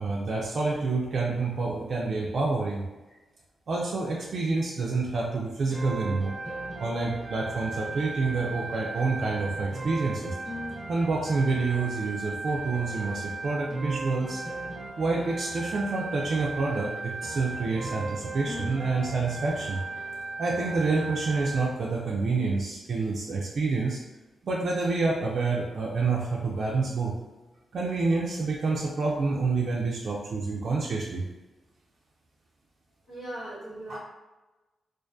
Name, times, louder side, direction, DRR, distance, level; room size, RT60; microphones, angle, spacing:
voice 1, 0.0-2.8 3.7-6.3 6.8-10.3 10.9-14.4 15.0-19.8 20.4-24.0 24.4-27.2 27.7-31.3 33.9-34.0, right 3 dB, 65° right, -3 dB, 0.3 m, -28 dB
sound 1, 5.7-21.7, right 2 dB, 20° right, 0.7 m, -36 dB
voice 2, 33.1-34.0, right 1 dB, 85° left, -9 dB, 1.3 m, -38 dB
2.4 x 2.2 x 2.5 m, 1.1 s
cardioid pair, 70°, 0 cm